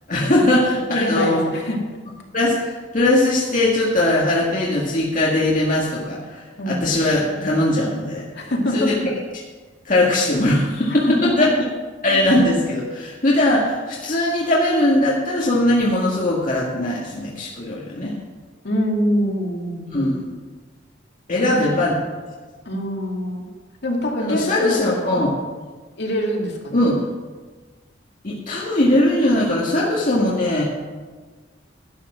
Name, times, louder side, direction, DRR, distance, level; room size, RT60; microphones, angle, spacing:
voice 1, 0.1-1.5 2.3-8.3 8.7-8.9 9.8-11.5 12.0-18.2 19.9-20.2 21.3-22.0 24.2-25.3 26.7-27.0 28.2-30.6, left 1 dB, 45° left, -4 dB, 1.7 m, -20 dB
voice 2, 0.9-1.8 6.6-6.9 8.3-8.9 11.1-11.5 18.6-19.9 21.4-21.6 22.7-23.4 23.8-25.2 26.0-26.8, equal, 65° left, 0 dB, 2.5 m, -24 dB
12.0 x 9.0 x 6.2 m, 1.4 s
head